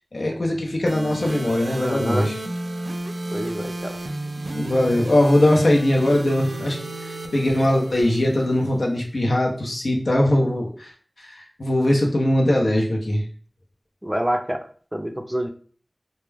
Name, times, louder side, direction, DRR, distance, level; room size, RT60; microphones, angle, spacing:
voice 1, 0.1-2.3 4.5-10.9 11.2-13.2, left 1 dB, 85° left, 0 dB, 0.6 m, -21 dB
sound 1, 0.9-8.8, right 1 dB, 90° right, 0.4 m, -33 dB
voice 2, 1.8-2.3 3.3-4.0 14.0-15.5, equal, 15° right, 5 dB, 0.4 m, -27 dB
2.2 x 2.1 x 3.2 m, 0.43 s
wide cardioid pair, 40°, 0 cm